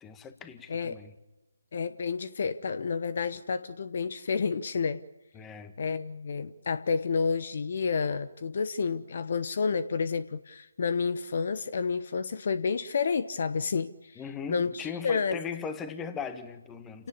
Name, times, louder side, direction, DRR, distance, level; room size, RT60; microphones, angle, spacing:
voice 1, 0.0-1.1 5.3-5.7 14.2-17.1, left 6 dB, 10° left, 10 dB, 1.6 m, -38 dB
voice 2, 1.7-5.0 5.8-14.2 14.5-14.7 15.0-15.4, left 5 dB, 45° left, 14 dB, 1.0 m, -30 dB
29.0 x 18.0 x 8.6 m, 1.1 s
figure-of-eight pair, 150°, 0 cm